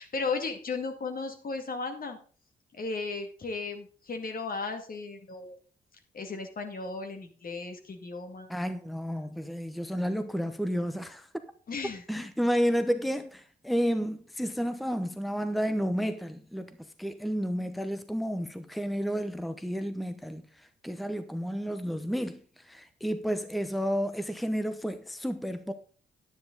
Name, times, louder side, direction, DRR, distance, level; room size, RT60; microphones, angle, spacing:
voice 1, 0.0-2.2 2.7-5.6 6.1-8.5 11.7-12.3, left 4 dB, 55° left, 2.2 m, -35 dB
voice 2, 8.5-11.3 12.1-25.7, equal, ahead, 0.9 m, -31 dB
10.0 x 9.6 x 4.0 m
cardioid pair, 65°, 18 cm